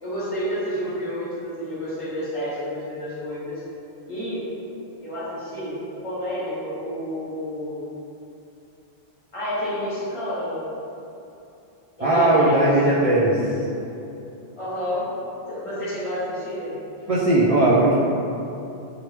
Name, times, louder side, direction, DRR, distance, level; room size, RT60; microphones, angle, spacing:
voice 1, 0.0-3.5 4.1-4.4 5.0-5.7 6.0-7.8 9.3-10.6 12.0-12.7 14.6-15.1 15.5-16.7, equal, 35° left, -10 dB, 0.9 m, -29 dB
voice 2, 12.0-13.5 17.1-18.0, right 1 dB, 50° right, -9 dB, 0.4 m, -18 dB
3.0 x 2.5 x 3.2 m, 2.8 s
omnidirectional pair, 1.1 m